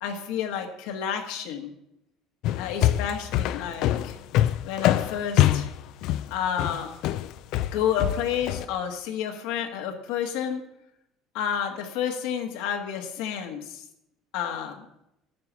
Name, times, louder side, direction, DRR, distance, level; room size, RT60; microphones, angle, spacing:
voice 1, 0.0-1.7 2.5-4.2 4.6-5.7 6.3-6.9 7.7-10.6 11.3-13.8 14.3-14.8, left 8 dB, 85° left, 4 dB, 1.6 m, -30 dB
sound 1, 2.4-8.7, left 13 dB, 70° left, 0.4 m, -24 dB
9.4 x 5.9 x 8.4 m, 0.80 s
cardioid pair, 110°, 0 cm